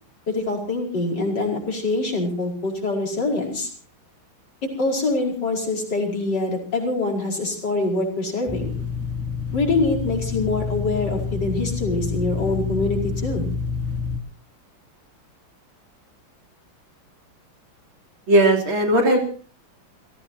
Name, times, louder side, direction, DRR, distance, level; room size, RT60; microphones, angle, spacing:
voice 1, 0.3-3.7 4.6-8.8 9.5-13.5, left 2 dB, 55° left, 0 dB, 5.6 m, -24 dB
sound 1, 8.5-14.2, left 5 dB, 5° right, 2.4 m, -28 dB
voice 2, 18.3-19.2, right 1 dB, 70° right, 1 dB, 4.1 m, -17 dB
29.5 x 16.5 x 2.8 m, 0.40 s
omnidirectional pair, 2.3 m